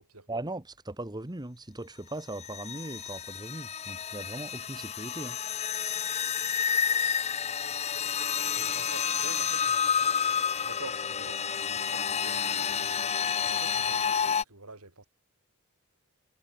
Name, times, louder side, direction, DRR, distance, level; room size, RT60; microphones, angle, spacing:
voice 1, 0.3-5.4, right 2 dB, 20° right, 1.4 m, -39 dB
sound 1, 2.4-14.4, left 7 dB, 30° left, 0.7 m, -30 dB
voice 2, 8.6-10.2 10.6-12.7 13.5-15.1, right 3 dB, 90° right, 6.9 m, -47 dB
head